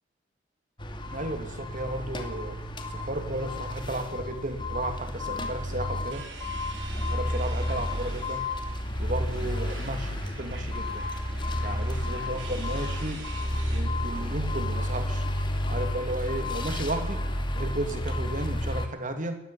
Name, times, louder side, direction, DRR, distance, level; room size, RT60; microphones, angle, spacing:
sound 1, 0.8-18.9, left 1 dB, 25° left, 2.5 m, -31 dB
voice 1, 1.1-2.6 2.9-6.2 7.1-8.4 9.0-11.1 11.6-13.2 13.7-15.2 15.7-17.2 17.6-19.4, right 1 dB, 45° right, 7 dB, 3.0 m, -34 dB
sound 2, 6.1-13.8, right 4 dB, 85° right, 4.6 m, -46 dB
20.0 x 17.0 x 8.6 m, 0.86 s
head